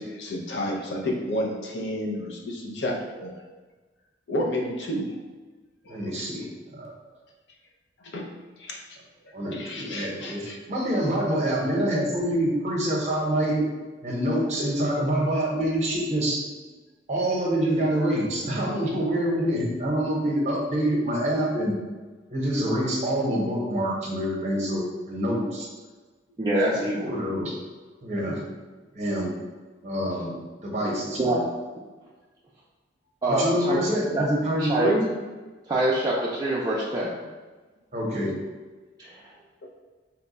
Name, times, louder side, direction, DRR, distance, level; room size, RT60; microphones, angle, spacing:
voice 1, 0.0-3.3 4.3-5.1 5.8-6.1 8.0-8.3 8.6-8.8 9.5-10.6, left 1 dB, 75° left, 0 dB, 0.6 m, -31 dB
voice 2, 5.9-6.9 9.3-13.6 14.0-16.4 17.1-21.7 22.3-25.7 27.0-27.5 28.0-28.4 28.9-29.3 29.8-30.4 30.6-31.4 33.3-35.0 37.9-38.3, right 1 dB, 40° right, -2 dB, 0.8 m, -26 dB
voice 3, 26.4-27.1 31.2-31.4 33.2-33.8 34.1-34.2 34.6-35.0 35.7-37.1 39.0-39.2, right 1 dB, 25° right, -6 dB, 0.4 m, -24 dB
2.9 x 2.2 x 3.9 m, 1.3 s
head